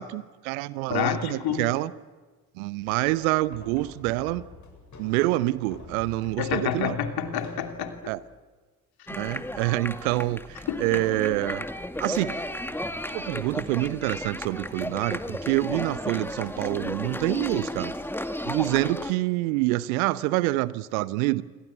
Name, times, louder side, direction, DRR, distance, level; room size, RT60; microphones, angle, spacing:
voice 1, 0.0-1.9 2.6-4.4 5.0-7.0 8.1-8.2 9.1-11.7 12.0-12.4 13.1-17.9 18.5-21.4, right 19 dB, 70° right, 19 dB, 0.9 m, -27 dB
voice 2, 0.9-1.7 6.4-8.1 10.7-11.0, left 8 dB, 55° left, 6 dB, 3.0 m, -29 dB
sound 1, 2.8-8.4, left 3 dB, 40° left, 7.7 m, -47 dB
sound 2, 9.1-19.1, left 1 dB, 5° left, 2.0 m, -33 dB
27.5 x 24.5 x 8.5 m, 1.4 s
figure-of-eight pair, 45°, 44 cm